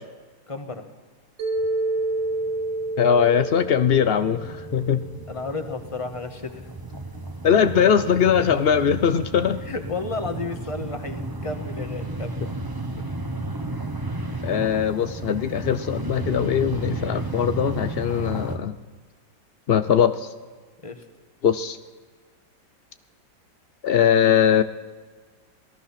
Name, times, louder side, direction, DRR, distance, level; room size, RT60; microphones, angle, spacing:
voice 1, 0.5-0.9 5.3-6.7 9.7-12.4 20.8-21.0, left 3 dB, 20° left, 6 dB, 1.5 m, -32 dB
Mallet percussion, 1.4-5.5, right 2 dB, 80° right, 3.3 m, -29 dB
sound 1, 1.6-1.7 2.0-18.6, right 2 dB, 15° right, 1.1 m, -33 dB
voice 2, 3.0-5.0 7.4-9.6 14.4-18.8 19.7-20.3 21.4-21.8 23.8-24.6, left 8 dB, 85° left, 11 dB, 0.5 m, -20 dB
27.5 x 18.0 x 5.9 m, 1.4 s
omnidirectional pair, 2.0 m